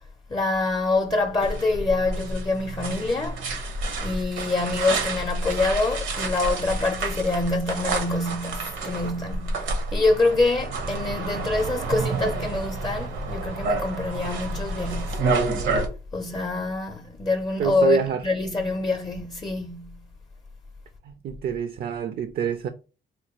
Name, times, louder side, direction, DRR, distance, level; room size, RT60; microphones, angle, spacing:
voice 1, 0.3-3.4 4.0-15.3 16.1-20.0, left 3 dB, 20° left, 0.5 m, -25 dB
sound 1, 1.4-15.9, right 3 dB, 75° right, 0.8 m, -29 dB
voice 2, 17.6-18.2 21.1-22.7, right 8 dB, 50° right, 0.4 m, -26 dB
4.2 x 2.2 x 2.9 m
cardioid pair, 90°, 20 cm